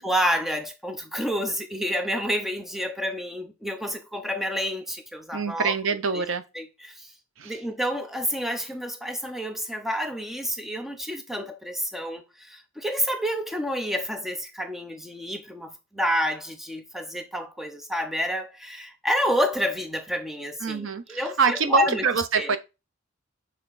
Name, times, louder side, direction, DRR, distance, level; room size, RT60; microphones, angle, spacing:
voice 1, 0.0-5.7 6.1-6.2 6.5-7.1 7.4-22.1 22.3-22.6, equal, ahead, 0.6 m, -29 dB
voice 2, 5.3-6.4 7.4-7.5 20.6-22.6, right 5 dB, 60° right, 0.6 m, -25 dB
6.7 x 3.5 x 4.0 m
head